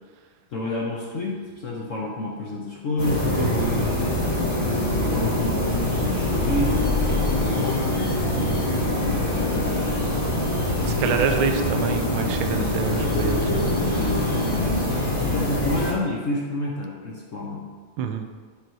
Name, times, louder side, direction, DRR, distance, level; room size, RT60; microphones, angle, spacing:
voice 1, 0.5-3.4 5.1-8.2 8.9-9.7 13.9-17.6, left 2 dB, 60° left, -3 dB, 0.8 m, -30 dB
sound 1, 3.0-15.9, left 1 dB, 35° left, 1.9 m, -24 dB
voice 2, 3.4-4.2 8.4-8.8 10.8-13.7 18.0-18.3, right 6 dB, 90° right, 6 dB, 1.4 m, -27 dB
5.3 x 4.6 x 5.6 m, 1.5 s
omnidirectional pair, 2.2 m